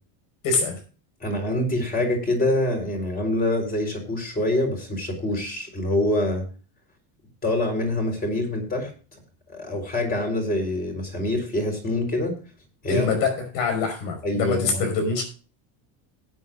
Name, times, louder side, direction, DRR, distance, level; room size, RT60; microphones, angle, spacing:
voice 1, 0.4-0.8 12.9-15.2, left 4 dB, 75° left, 7 dB, 5.4 m, -24 dB
voice 2, 1.2-6.4 7.4-9.2 9.5-12.3 12.8-13.1 14.2-14.9, left 1 dB, 20° left, 2 dB, 4.0 m, -25 dB
18.5 x 9.6 x 2.4 m, 0.37 s
cardioid pair, 160°, 48 cm